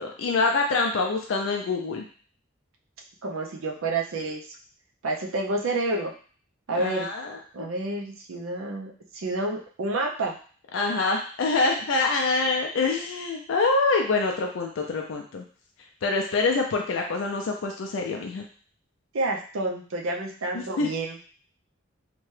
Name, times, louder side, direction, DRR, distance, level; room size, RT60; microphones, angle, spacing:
voice 1, 0.0-2.0 6.8-7.4 10.7-15.4 16.0-18.4 20.5-20.9, left 3 dB, 70° left, 2 dB, 0.4 m, -25 dB
voice 2, 3.2-4.4 5.0-6.1 6.7-7.1 7.5-10.4 19.1-21.2, right 2 dB, 75° right, 1 dB, 0.5 m, -29 dB
2.8 x 2.2 x 3.1 m, 0.43 s
head